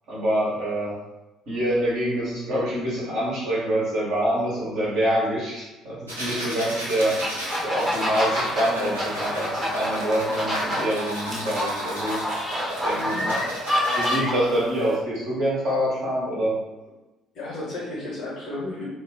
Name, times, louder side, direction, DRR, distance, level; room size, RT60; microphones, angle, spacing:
voice 1, 0.1-1.0 1.5-7.2 7.6-12.2 12.8-13.4 14.0-16.6, right 1 dB, 55° right, -7 dB, 1.1 m, -26 dB
sound 1, 6.1-14.2, equal, 85° right, 0.6 m, -33 dB
sound 2, 7.0-14.8, equal, 15° right, 0.9 m, -27 dB
voice 2, 12.9-13.3 17.3-18.9, left 2 dB, 55° left, -3 dB, 1.0 m, -33 dB
2.4 x 2.3 x 3.7 m, 1.0 s
figure-of-eight pair, 50°, 0 cm